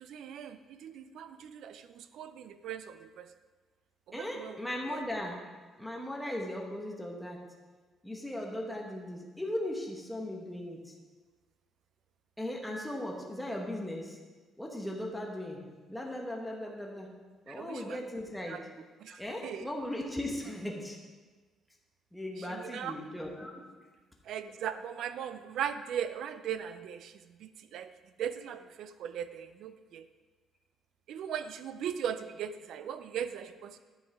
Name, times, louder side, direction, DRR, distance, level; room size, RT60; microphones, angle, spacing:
voice 1, 0.0-3.3 4.1-4.6 4.9-5.0 17.5-18.0 18.5-18.6 19.0-19.7 22.5-22.9 24.3-27.9 28.2-30.1 31.1-33.8, right 9 dB, 60° right, 12 dB, 0.4 m, -39 dB
voice 2, 4.1-5.5 5.8-7.4 8.0-11.0 12.4-14.2 14.6-15.6 15.9-17.1 17.5-18.6 19.1-21.0 22.1-23.5, left 1 dB, 5° left, -1 dB, 1.0 m, -38 dB
10.0 x 5.4 x 4.7 m, 1.3 s
cardioid pair, 170°, 0 cm